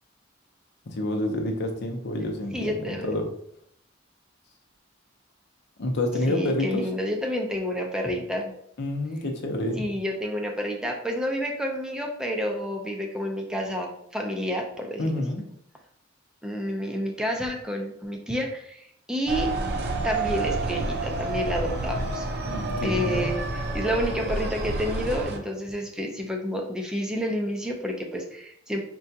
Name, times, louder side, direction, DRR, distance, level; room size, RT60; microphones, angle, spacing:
voice 1, 0.9-3.3 5.8-6.9 8.8-9.8 15.0-15.4 22.4-23.3, left 1 dB, 60° left, 3 dB, 0.6 m, -28 dB
voice 2, 2.5-3.1 6.3-8.5 9.8-15.1 16.4-19.5 20.0-22.3 22.8-23.4 23.7-28.8, equal, 5° right, 1 dB, 0.5 m, -29 dB
sound 1, 19.3-25.4, right 2 dB, 55° right, 0.6 m, -29 dB
4.7 x 2.2 x 2.7 m, 0.69 s
head